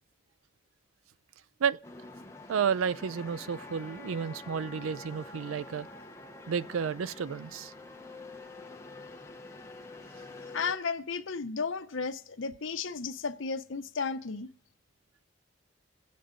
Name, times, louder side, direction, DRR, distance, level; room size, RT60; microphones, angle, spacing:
sound 1, 1.8-10.7, left 2 dB, 15° left, 0.8 m, -47 dB
voice 1, 2.5-5.9 6.5-7.7, right 7 dB, 90° right, 0.4 m, -31 dB
voice 2, 10.5-14.5, left 5 dB, 75° left, 0.7 m, -34 dB
24.0 x 8.5 x 3.8 m
head